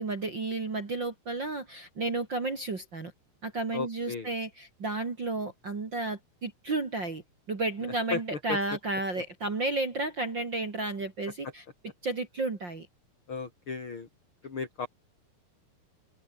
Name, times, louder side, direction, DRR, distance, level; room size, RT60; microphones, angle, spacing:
voice 1, 0.0-3.1 3.4-7.2 7.5-11.6 12.0-12.9, right 2 dB, 30° right, 3.2 m, -32 dB
voice 2, 3.7-4.3 8.1-8.6 13.3-14.1 14.4-14.9, left 5 dB, 35° left, 4.3 m, -35 dB
omnidirectional pair, 4.3 m